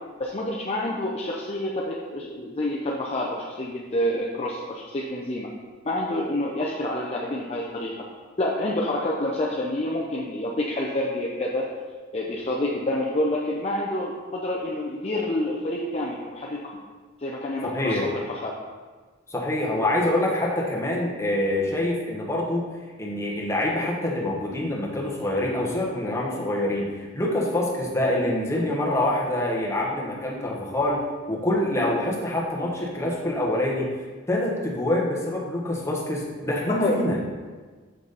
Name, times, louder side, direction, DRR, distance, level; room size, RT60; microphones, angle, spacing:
voice 1, 0.2-5.5 5.8-7.9 8.4-11.7 12.1-16.8 17.2-18.5 28.2-28.3 36.7-37.0, left 1 dB, 30° left, -3 dB, 0.6 m, -28 dB
voice 2, 17.6-18.1 19.3-22.7 23.0-31.0 31.3-33.9 34.3-37.2, left 1 dB, 15° left, -3 dB, 1.2 m, -25 dB
6.8 x 5.9 x 4.0 m, 1.4 s
head